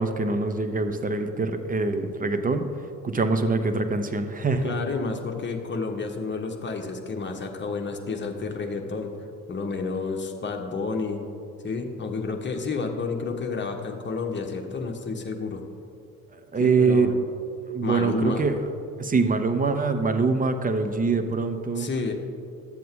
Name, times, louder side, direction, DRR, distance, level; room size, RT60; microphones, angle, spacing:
voice 1, 0.0-2.7 3.0-4.7 16.3-17.1 17.6-18.6 19.0-21.9, right 4 dB, 20° right, 8 dB, 0.8 m, -24 dB
voice 2, 4.6-9.1 9.5-11.3 11.6-15.6 16.6-17.1 17.8-18.4 21.7-22.1, left 4 dB, 25° left, 3 dB, 1.2 m, -30 dB
12.0 x 7.6 x 3.7 m, 2.6 s
hypercardioid pair, 55°, 42 cm